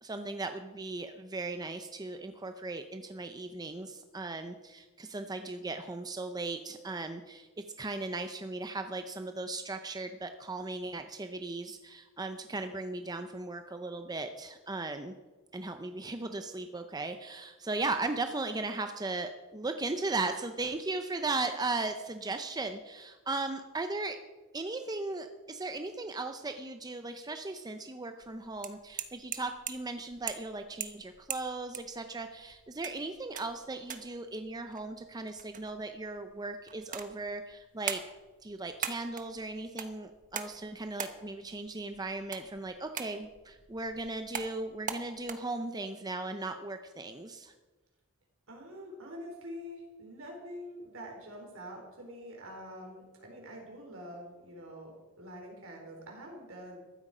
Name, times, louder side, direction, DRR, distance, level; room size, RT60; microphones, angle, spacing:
voice 1, 0.0-15.1 15.5-24.2 24.5-38.0 38.4-47.5, right 3 dB, 20° right, 7 dB, 0.6 m, -37 dB
sound 1, 28.2-45.3, right 8 dB, 40° right, 1.1 m, -43 dB
voice 2, 48.5-54.9 55.2-56.8, equal, 65° right, 1 dB, 4.3 m, -45 dB
14.5 x 12.5 x 5.0 m, 1.2 s
head